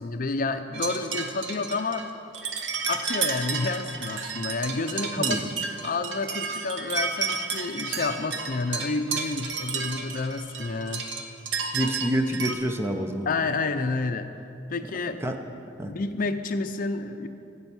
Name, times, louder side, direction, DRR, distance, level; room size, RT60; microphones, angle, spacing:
voice 1, 0.0-2.0 2.9-5.4 5.8-11.1 13.3-14.3 14.7-15.2 15.8-17.3, left 3 dB, 50° left, 8 dB, 0.6 m, -29 dB
sound 1, 0.7-12.6, right 5 dB, 75° right, 0.9 m, -32 dB
voice 2, 11.7-13.3 15.2-15.4 15.8-15.9, equal, 15° right, 5 dB, 0.7 m, -27 dB
14.5 x 8.1 x 6.1 m, 2.7 s
head